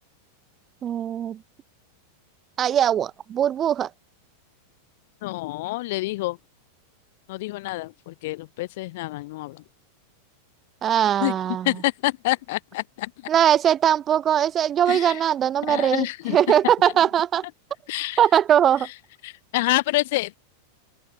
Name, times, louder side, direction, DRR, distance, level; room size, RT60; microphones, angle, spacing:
voice 1, 0.8-1.4 2.6-3.9 10.8-11.8 13.3-17.4 18.2-18.9, right 10 dB, 30° right, 3.1 m, -21 dB
voice 2, 5.2-6.4 7.3-9.5 11.2-11.3 11.6-13.1 14.9-15.2 15.7-16.4 16.8-16.9 17.9-18.2 19.2-20.4, left 19 dB, 60° left, 2.8 m, -27 dB
open air
hypercardioid pair, 100°, 0 cm